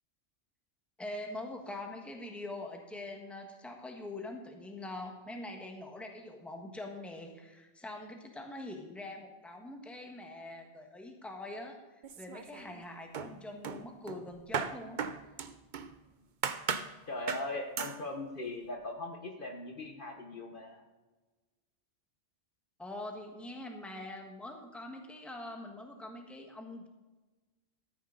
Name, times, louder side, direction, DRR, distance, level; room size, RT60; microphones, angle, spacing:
voice 1, 1.0-15.0 22.8-26.9, left 2 dB, ahead, 2 dB, 1.4 m, -44 dB
sound 1, 12.0-12.8 13.1-15.9 16.4-16.9 17.3-17.5 17.8-18.0, right 6 dB, 50° right, 0.7 m, -37 dB
voice 2, 17.1-20.8, left 2 dB, 45° left, 3 dB, 1.3 m, -39 dB
13.5 x 9.5 x 3.9 m, 1.2 s
omnidirectional pair, 1.2 m